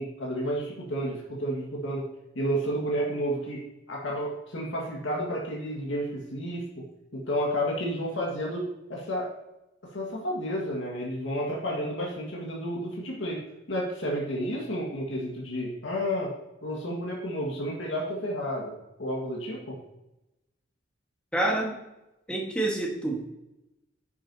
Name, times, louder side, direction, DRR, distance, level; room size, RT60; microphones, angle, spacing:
voice 1, 0.0-2.1 2.4-6.8 7.1-9.3 9.9-13.4 13.7-16.3 16.6-18.7 19.0-19.8, equal, 80° left, -3 dB, 1.9 m, -31 dB
voice 2, 21.3-21.8 22.3-23.3, right 2 dB, 5° left, -2 dB, 1.7 m, -27 dB
10.0 x 7.2 x 2.9 m, 0.94 s
head